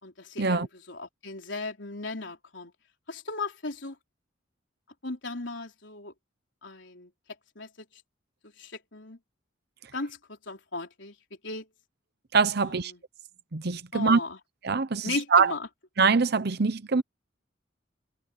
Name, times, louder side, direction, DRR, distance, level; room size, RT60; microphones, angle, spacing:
voice 1, 0.0-2.7 3.1-4.0 5.0-6.1 6.6-7.1 7.6-8.0 8.4-9.2 9.9-11.2 11.4-11.7 12.6-13.0 13.9-14.4 15.0-15.7, left 3 dB, 70° left, 4.2 m, -37 dB
voice 2, 12.3-12.9 13.5-14.2 14.6-15.5 16.0-17.0, right 5 dB, 60° right, 0.9 m, -23 dB
head